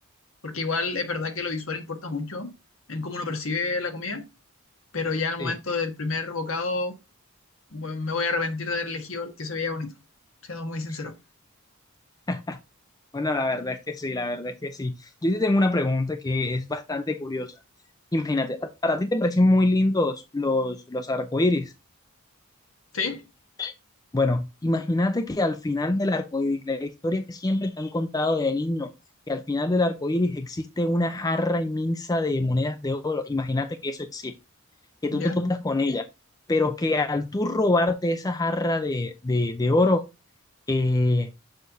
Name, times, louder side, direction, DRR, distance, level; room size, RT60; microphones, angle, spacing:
voice 1, 0.4-2.5 2.9-4.2 4.9-6.9 7.7-9.9 10.4-11.1 22.9-23.2 35.1-35.4, left 3 dB, 60° left, 1.4 m, -29 dB
voice 2, 12.3-12.6 13.1-17.5 18.1-21.7 23.6-23.7 24.1-28.9 29.3-34.3 35.0-36.1 36.5-40.0 40.7-41.3, left 2 dB, 15° left, 0.4 m, -25 dB
6.4 x 6.4 x 2.7 m
head